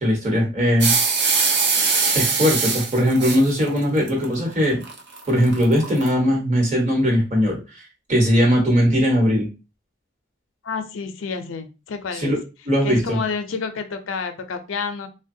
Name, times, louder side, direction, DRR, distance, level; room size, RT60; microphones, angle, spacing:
voice 1, 0.0-0.9 2.1-4.8 5.2-7.8 8.1-9.5 12.1-12.4 12.7-13.2, equal, 35° right, -1 dB, 1.0 m, -19 dB
sound 1, 0.8-6.1, right 4 dB, 55° right, 0.6 m, -22 dB
voice 2, 10.6-12.4 12.8-15.1, left 5 dB, 80° left, 7 dB, 0.5 m, -29 dB
3.3 x 2.1 x 2.6 m, 0.29 s
head